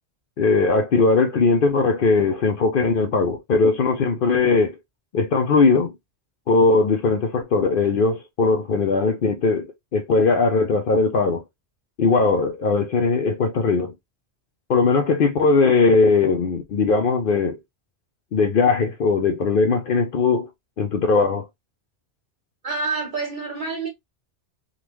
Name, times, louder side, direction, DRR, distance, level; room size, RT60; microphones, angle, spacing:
voice 1, 0.4-4.8 5.1-5.9 6.5-11.4 12.0-13.9 14.7-17.6 18.3-20.5 20.8-21.5, left 4 dB, 60° left, 0.7 m, -19 dB
voice 2, 22.6-23.9, right 4 dB, 45° right, 1.5 m, -27 dB
3.6 x 2.3 x 3.0 m
omnidirectional pair, 1.1 m